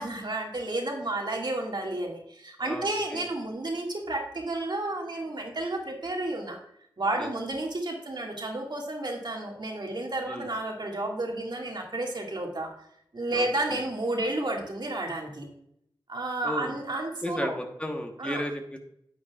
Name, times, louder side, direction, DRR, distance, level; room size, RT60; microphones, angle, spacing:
voice 1, 0.0-6.6 7.0-12.7 13.1-15.5 16.1-17.5 18.2-18.4, right 2 dB, 55° right, 0 dB, 2.0 m, -31 dB
voice 2, 2.6-3.3 7.2-7.3 10.3-10.5 13.3-13.8 16.4-16.8 17.2-18.8, left 1 dB, 15° left, 3 dB, 1.2 m, -34 dB
9.3 x 8.4 x 2.4 m, 0.72 s
cardioid pair, 50°, 9 cm